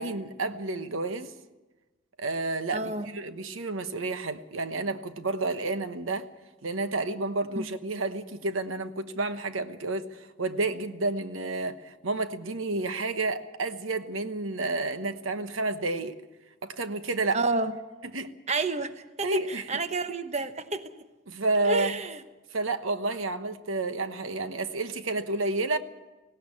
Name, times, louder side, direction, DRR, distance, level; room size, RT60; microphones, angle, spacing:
voice 1, 0.0-1.3 2.2-6.3 6.6-16.2 16.6-17.4 18.1-18.3 19.2-19.7 21.3-22.0 22.5-25.8, right 2 dB, 85° right, 10 dB, 1.1 m, -30 dB
voice 2, 2.7-3.1 7.6-7.7 17.3-17.7 18.5-20.9 21.7-22.2, right 3 dB, 35° right, 9 dB, 1.0 m, -30 dB
18.5 x 17.5 x 8.5 m, 1.1 s
head